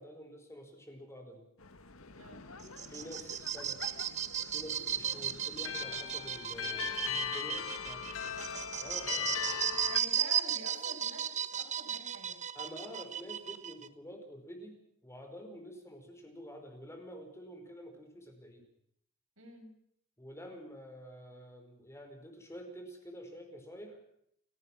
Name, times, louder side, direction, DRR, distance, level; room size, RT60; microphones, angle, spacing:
voice 1, 0.0-1.4 2.9-3.8 4.5-8.2 8.8-9.7 12.5-18.6 20.2-24.0, equal, 15° left, 4 dB, 5.0 m, -48 dB
sound 1, 1.6-10.0, left 8 dB, 80° left, 1.9 m, -40 dB
sound 2, 2.6-13.9, right 9 dB, 35° right, 1.0 m, -35 dB
voice 2, 6.6-7.0 9.9-12.4 19.4-19.8, right 2 dB, 75° right, 2 dB, 7.3 m, -49 dB
30.0 x 18.0 x 6.3 m, 0.70 s
head